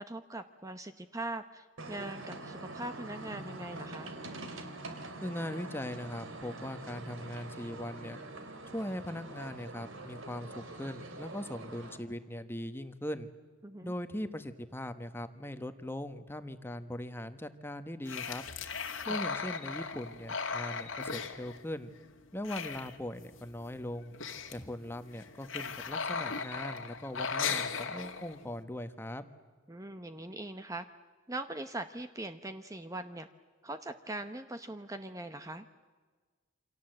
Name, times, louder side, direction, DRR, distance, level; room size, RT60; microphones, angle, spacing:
voice 1, 0.0-4.1 13.6-13.9 19.0-19.2 29.7-30.9 31.3-33.3 33.6-35.7, right 2 dB, 15° right, 9 dB, 0.9 m, -41 dB
sound 1, 1.8-12.0, right 2 dB, 80° right, 3.1 m, -45 dB
voice 2, 5.2-8.2 8.7-13.3 13.8-18.4 19.0-21.9 22.3-24.1 24.5-29.2, left 1 dB, 10° left, 9 dB, 1.3 m, -40 dB
sound 2, 18.1-22.1 22.3-23.4 23.7-23.8 24.0-24.6 25.1-28.5, left 5 dB, 85° left, 2.1 m, -37 dB
28.5 x 26.0 x 7.8 m, 1.4 s
head